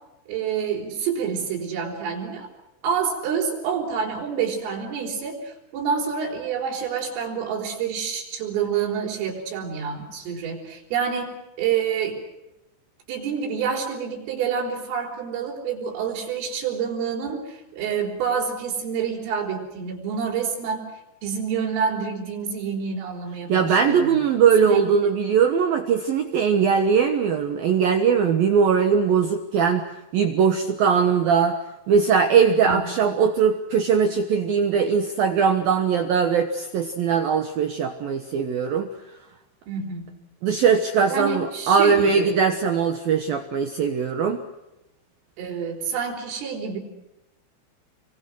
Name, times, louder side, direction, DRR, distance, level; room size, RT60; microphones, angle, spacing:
voice 1, 0.3-2.5 2.8-12.2 13.1-20.8 21.2-24.2 24.6-25.2 32.6-33.0 39.7-40.2 41.1-42.4 45.4-46.8, right 6 dB, 80° right, -2 dB, 7.0 m, -28 dB
voice 2, 23.5-29.9 30.1-31.6 31.9-38.9 40.4-44.4, right 6 dB, 65° right, 6 dB, 2.4 m, -20 dB
29.0 x 24.0 x 6.4 m, 0.95 s
omnidirectional pair, 5.8 m